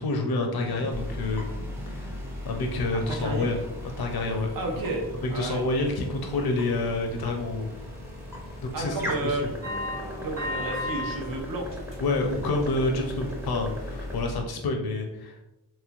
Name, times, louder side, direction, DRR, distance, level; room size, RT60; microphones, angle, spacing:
voice 1, 0.0-1.5 1.9-2.2 2.4-4.5 5.2-7.7 8.6-9.5 12.0-15.4, left 2 dB, 70° left, 3 dB, 0.5 m, -28 dB
sound 1, 0.6-14.2, equal, 5° right, 0.5 m, -41 dB
sound 2, 0.9-14.4, left 1 dB, 85° right, 1.1 m, -40 dB
voice 2, 3.1-3.5 4.5-5.0 5.3-5.6 8.7-9.5 10.2-11.7 12.5-12.6, right 2 dB, 60° right, 0 dB, 0.7 m, -31 dB
sound 3, 9.6-11.2 11.6-12.2 12.6-12.8 13.3-13.4, left 1 dB, 35° right, 1.2 m, -33 dB
3.1 x 2.9 x 2.4 m, 0.93 s
wide cardioid pair, 70°, 39 cm